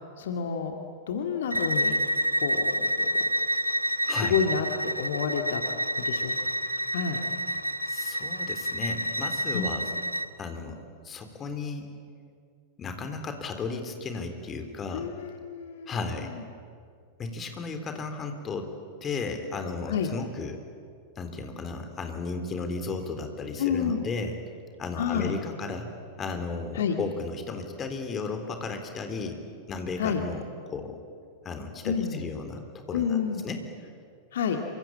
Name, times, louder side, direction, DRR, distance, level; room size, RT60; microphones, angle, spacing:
voice 1, 0.2-0.7 1.1-2.0 2.4-3.1 4.2-5.6 6.0-6.3 6.9-7.2 9.5-9.7 14.9-16.0 16.3-16.4 19.9-20.1 23.6-24.0 25.0-25.3 26.7-27.0 30.0-30.2 31.8-32.3 32.9-33.4 34.3-34.6, left 7 dB, 60° left, 4 dB, 2.2 m, -29 dB
Bowed string instrument, 1.5-10.3, equal, 90° right, 0.8 m, -28 dB
voice 2, 7.9-9.8 10.4-10.8 11.0-11.9 12.8-15.1 15.9-16.3 17.2-18.7 19.0-20.6 21.2-24.3 24.8-25.9 26.2-29.4 29.7-31.0 31.4-33.6, left 4 dB, 25° left, 6 dB, 3.8 m, -34 dB
27.0 x 25.0 x 8.8 m, 2.2 s
figure-of-eight pair, 90°, 0 cm